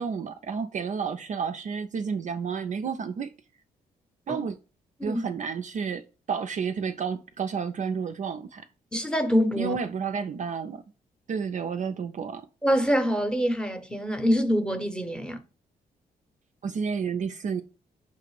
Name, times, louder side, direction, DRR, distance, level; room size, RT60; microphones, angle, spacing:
voice 1, 0.0-3.3 4.3-4.6 5.0-8.7 9.6-10.8 11.3-12.5 16.6-17.6, right 6 dB, 40° right, 0.4 m, -31 dB
voice 2, 8.9-9.8 12.6-15.4, equal, 5° left, 0.8 m, -25 dB
5.5 x 2.4 x 3.2 m
hypercardioid pair, 40°, 19 cm